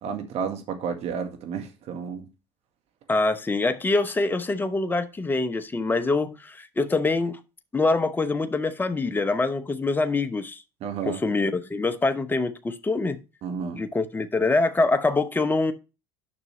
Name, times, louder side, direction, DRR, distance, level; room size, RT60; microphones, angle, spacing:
voice 1, 0.0-2.3 10.8-11.2 13.4-13.8, right 6 dB, 55° right, 1.8 m, -31 dB
voice 2, 3.1-7.4 7.7-10.6 11.0-13.2 13.7-15.7, left 3 dB, 15° left, 0.9 m, -24 dB
9.7 x 6.0 x 3.2 m
hypercardioid pair, 75°, 13 cm